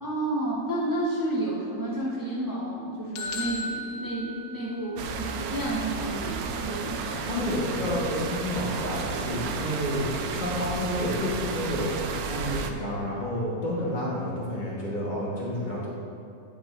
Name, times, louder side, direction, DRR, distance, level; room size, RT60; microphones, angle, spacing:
voice 1, 0.0-7.3, right 1 dB, 15° right, -7 dB, 1.1 m, -31 dB
sound 1, 3.1-5.1, left 2 dB, 75° left, 1.1 m, -35 dB
sound 2, 5.0-12.7, right 5 dB, 80° right, 1.0 m, -33 dB
voice 2, 7.2-15.9, left 1 dB, 30° left, -6 dB, 1.4 m, -30 dB
9.2 x 5.8 x 3.3 m, 2.7 s
omnidirectional pair, 1.6 m